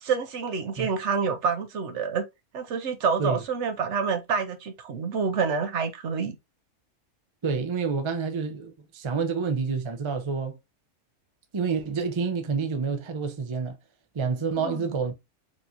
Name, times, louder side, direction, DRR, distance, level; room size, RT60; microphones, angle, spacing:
voice 1, 0.0-2.2 2.5-6.4 14.6-14.8, right 5 dB, 65° right, 0.9 m, -27 dB
voice 2, 7.4-10.6 11.5-13.8 14.1-15.1, right 5 dB, 30° right, 0.6 m, -28 dB
4.5 x 3.1 x 2.6 m
omnidirectional pair, 1.3 m